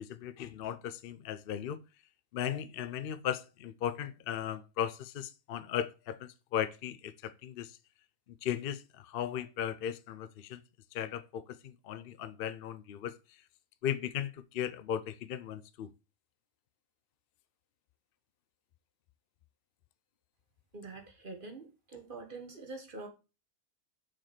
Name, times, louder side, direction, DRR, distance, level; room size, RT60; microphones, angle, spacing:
voice 1, 0.0-1.8 2.3-7.7 8.4-10.6 10.9-13.1 13.8-15.9, left 9 dB, 65° left, 0.5 m, -37 dB
voice 2, 20.7-23.1, right 3 dB, 40° right, 1.7 m, -45 dB
6.0 x 5.0 x 4.3 m
omnidirectional pair, 1.5 m